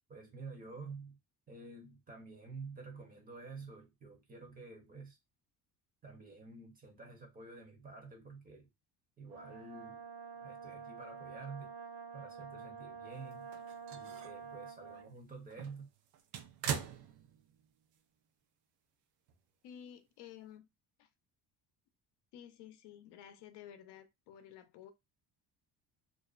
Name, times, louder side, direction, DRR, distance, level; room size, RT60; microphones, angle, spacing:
voice 1, 0.1-1.2 1.5-5.2 6.0-8.7 9.2-10.0 10.4-11.7 12.1-13.5 13.9-15.9, right 4 dB, 20° right, 0.6 m, -49 dB
Brass instrument, 9.3-15.1, right 6 dB, 70° right, 1.0 m, -48 dB
sound 1, 13.3-14.5 14.9-15.0 15.5-17.7 18.0-18.1 19.3-19.4, right 8 dB, 90° right, 0.6 m, -42 dB
voice 2, 19.6-20.6 21.0-21.1 22.3-24.9, left 10 dB, 75° left, 0.6 m, -53 dB
2.4 x 2.1 x 2.3 m
cardioid pair, 145°, 40 cm